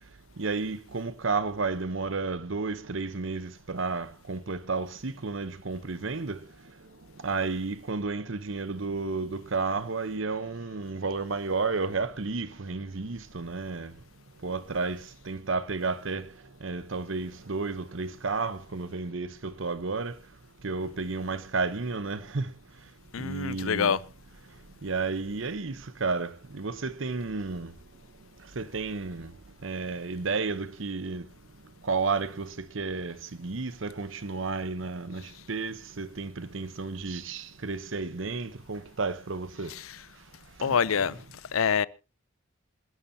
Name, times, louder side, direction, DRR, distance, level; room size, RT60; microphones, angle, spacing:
voice 1, 0.4-6.4 7.2-13.9 14.4-16.3 16.6-20.2 20.6-22.5 23.2-24.0 24.8-27.7 28.6-29.3 29.6-31.3 31.8-39.7 40.6-41.2, right 4 dB, 65° right, 0.9 m, -32 dB
voice 2, 23.1-24.0 39.7-40.0 40.6-41.8, left 6 dB, 85° left, 0.6 m, -27 dB
27.5 x 11.0 x 2.8 m
head